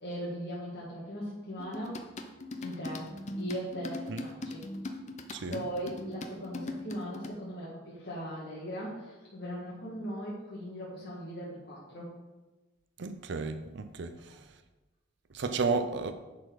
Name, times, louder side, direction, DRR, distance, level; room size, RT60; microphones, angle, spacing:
voice 1, 0.0-2.0 2.6-3.1 3.4-4.7 5.5-12.1 14.3-14.4, equal, 55° left, -7 dB, 1.8 m, -39 dB
sound 1, 1.6-7.3, left 2 dB, 35° left, 0.7 m, -40 dB
voice 2, 5.3-5.6 13.0-14.4 15.3-16.1, right 4 dB, 60° right, 9 dB, 0.6 m, -33 dB
10.0 x 4.3 x 4.8 m, 1.2 s
head